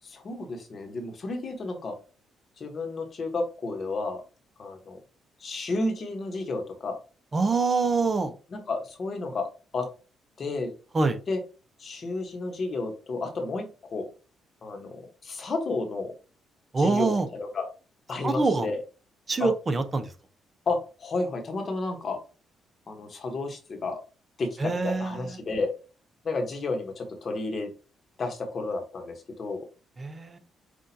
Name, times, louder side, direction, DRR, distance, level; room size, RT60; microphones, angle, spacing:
voice 1, 0.0-2.0 2.6-4.2 4.6-5.0 5.4-7.0 8.5-9.9 10.4-10.7 11.3-11.4 11.8-13.6 13.9-14.0 14.6-16.1 16.8-17.7 18.1-18.8 19.4-19.5 20.7-22.2 22.9-24.0 24.4-25.7 26.2-27.7 28.2-29.6, left 3 dB, 45° left, 5 dB, 1.1 m, -31 dB
voice 2, 7.3-8.3 10.9-11.2 16.7-17.3 18.2-18.7 19.3-20.1 24.6-25.3 30.0-30.4, right 3 dB, 30° right, 9 dB, 0.7 m, -25 dB
5.9 x 2.5 x 2.7 m, 0.33 s
cardioid pair, 90°, 0 cm